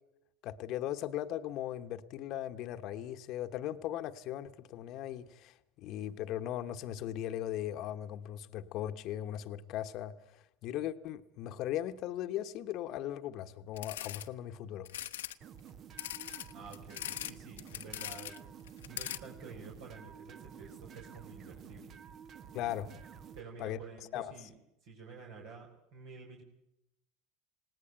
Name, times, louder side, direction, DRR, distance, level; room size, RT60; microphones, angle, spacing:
voice 1, 0.4-14.9 22.5-22.9 23.6-23.8 24.1-24.3, left 12 dB, 55° left, 1.1 m, -38 dB
sound 1, 13.8-14.3 14.9-15.3 16.0-17.3 17.6-18.4 18.7-19.2, left 12 dB, 85° left, 1.0 m, -40 dB
sound 2, 15.4-23.4, right 8 dB, 45° right, 1.2 m, -51 dB
voice 2, 16.5-18.4 18.8-22.0 23.3-24.5 24.8-26.4, right 4 dB, 70° right, 4.8 m, -50 dB
20.0 x 18.0 x 9.0 m
hypercardioid pair, 95°, 0 cm